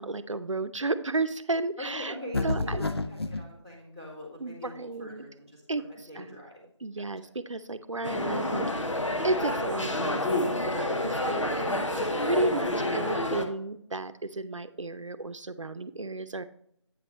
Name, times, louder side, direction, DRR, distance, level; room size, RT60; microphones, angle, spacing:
voice 1, 0.0-2.1 2.4-2.9 4.4-5.3 5.7-5.8 6.1-6.4 6.8-8.9 9.2-16.4, right 2 dB, 85° right, 12 dB, 0.7 m, -33 dB
voice 2, 1.8-6.6 7.0-7.1, left 1 dB, 15° left, -9 dB, 2.4 m, -42 dB
sound 1, 2.3-3.5, left 2 dB, 55° left, 0.6 m, -29 dB
sound 2, 8.0-13.4, left 1 dB, 80° left, 1.2 m, -29 dB
8.6 x 6.2 x 3.1 m, 0.68 s
figure-of-eight pair, 170°, 16 cm